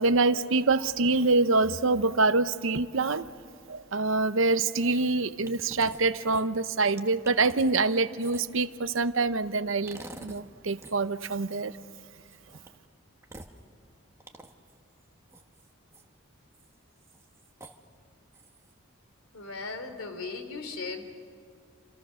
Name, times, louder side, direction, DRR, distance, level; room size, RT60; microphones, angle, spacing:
voice 1, 0.0-3.2 3.7-11.7, right 3 dB, 70° right, 0.8 m, -25 dB
sound 1, 5.5-6.0 6.3-8.6 9.9-10.4 10.7-10.9 12.3-12.7 13.2-13.6 14.2-14.7 15.3-16.0 16.5-16.7 17.0-17.8 18.3-18.7, right 2 dB, 15° right, 1.2 m, -46 dB
voice 2, 19.3-21.1, left 4 dB, 90° left, 3.0 m, -37 dB
28.5 x 27.0 x 6.4 m
head